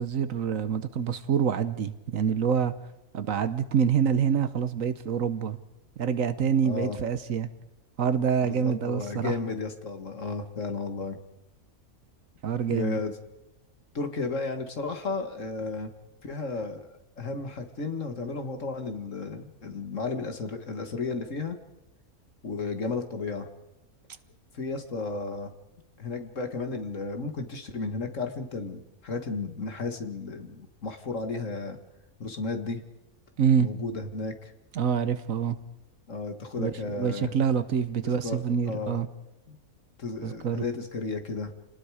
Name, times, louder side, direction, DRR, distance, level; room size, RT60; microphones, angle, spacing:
voice 1, 0.0-2.7 3.1-5.6 6.0-7.5 8.0-9.3 12.4-13.0 33.4-33.7 34.7-35.6 36.6-39.1 40.2-40.6, right 7 dB, 65° right, 12 dB, 1.3 m, -26 dB
voice 2, 6.6-7.0 8.4-11.2 12.7-13.1 13.9-15.9 16.2-16.9 17.2-21.6 22.4-23.5 24.5-25.5 26.0-31.8 32.2-32.8 33.6-34.5 36.1-37.3 38.0-38.4 38.7-39.0 39.5-39.6 40.0-41.5, left 3 dB, 55° left, 6 dB, 2.1 m, -33 dB
29.0 x 19.0 x 4.9 m, 0.94 s
omnidirectional pair, 1.6 m